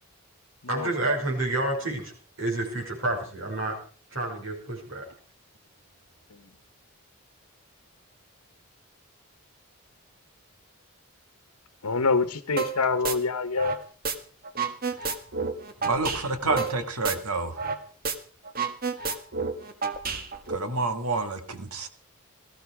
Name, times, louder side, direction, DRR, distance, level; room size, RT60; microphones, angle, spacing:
voice 1, 0.7-2.1 2.4-3.8 4.1-5.1, right 2 dB, 60° right, -1 dB, 5.8 m, -29 dB
voice 2, 11.8-13.8, left 4 dB, 85° left, 11 dB, 1.1 m, -25 dB
sound 1, 12.6-12.8 13.0-14.2 14.4-17.8 18.0-18.2 18.5-20.6, right 5 dB, 40° right, 1.6 m, -30 dB
voice 3, 15.8-17.6 20.5-21.9, right 3 dB, 90° right, 8 dB, 2.1 m, -28 dB
17.5 x 14.5 x 4.9 m, 0.41 s
head